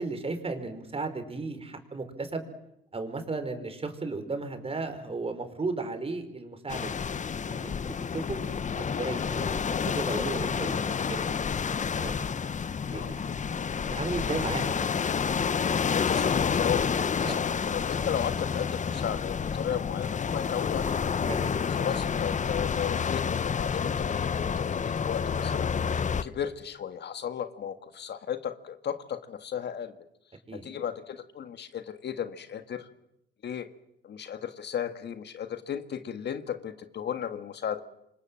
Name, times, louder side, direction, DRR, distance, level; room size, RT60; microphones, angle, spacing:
voice 1, 0.0-2.4 2.9-7.0 7.5-10.8 11.1-12.5 12.9-13.3 13.9-14.9 17.2-17.4 21.3-21.5 26.2-26.3 30.5-30.6, right 3 dB, 30° right, 8 dB, 5.1 m, -35 dB
sound 1, 6.7-26.2, left 6 dB, 40° left, 1.0 m, -29 dB
voice 2, 15.9-21.0 21.6-30.0 30.5-32.9 33.4-33.7 34.0-37.8, left 8 dB, 60° left, 9 dB, 1.9 m, -35 dB
28.0 x 25.0 x 7.8 m, 0.82 s
cardioid pair, 90°, 20 cm